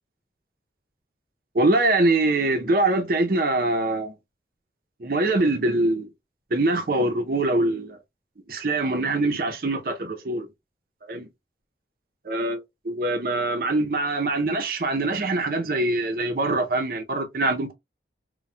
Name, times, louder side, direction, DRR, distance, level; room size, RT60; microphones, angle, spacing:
voice 1, 1.5-4.1 5.0-6.1 6.5-8.0 8.5-10.5 11.1-11.3 12.3-12.6 12.9-17.7, right 2 dB, 55° right, 0.6 m, -23 dB
4.1 x 2.2 x 2.2 m
head